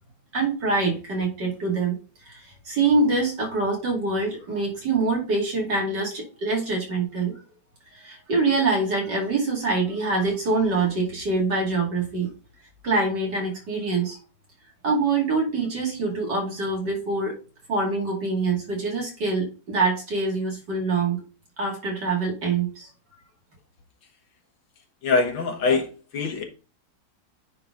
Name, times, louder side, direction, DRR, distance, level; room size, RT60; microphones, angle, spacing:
voice 1, 0.3-2.0 2.3-7.4 7.9-12.3 12.8-14.2 14.8-17.4 17.7-21.2 21.6-22.9, right 3 dB, 60° right, -1 dB, 3.1 m, -25 dB
voice 2, 25.0-26.4, left 4 dB, 70° left, 4 dB, 2.1 m, -23 dB
9.5 x 4.1 x 3.8 m, 0.34 s
omnidirectional pair, 2.1 m